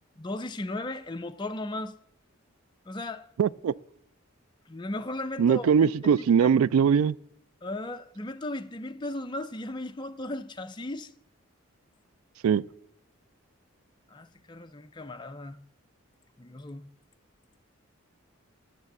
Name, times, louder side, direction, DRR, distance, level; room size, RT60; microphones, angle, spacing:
voice 1, 0.2-1.9 2.9-3.3 4.7-6.5 7.6-11.1 14.1-15.6 16.4-16.8, left 2 dB, 20° left, 0.5 m, -36 dB
voice 2, 3.4-3.7 5.4-7.1 12.4-12.6, right 7 dB, 90° right, 0.3 m, -21 dB
9.7 x 6.8 x 7.7 m
head